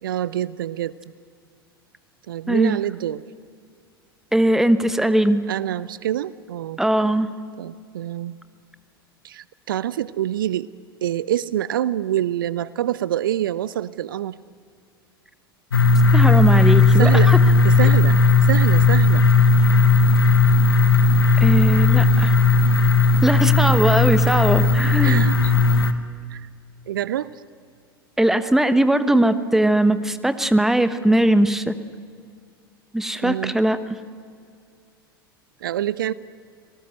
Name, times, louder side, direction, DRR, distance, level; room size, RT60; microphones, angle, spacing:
voice 1, 0.0-0.9 2.3-3.2 5.5-6.8 7.6-8.4 9.2-10.7 11.0-14.4 17.0-17.3 17.6-19.2 25.0-25.5 26.3-26.5 26.9-27.3 33.2-33.5 35.6-36.1, right 12 dB, 60° right, 20 dB, 0.5 m, -26 dB
voice 2, 2.5-2.8 4.3-5.4 6.8-7.3 16.1-17.4 21.4-22.3 23.2-25.3 28.2-31.8 32.9-33.8, right 1 dB, 5° right, 13 dB, 1.1 m, -19 dB
sound 1, 15.7-25.9, left 3 dB, 75° left, 1.3 m, -16 dB
27.0 x 18.5 x 7.9 m, 2.2 s
figure-of-eight pair, 85°, 12 cm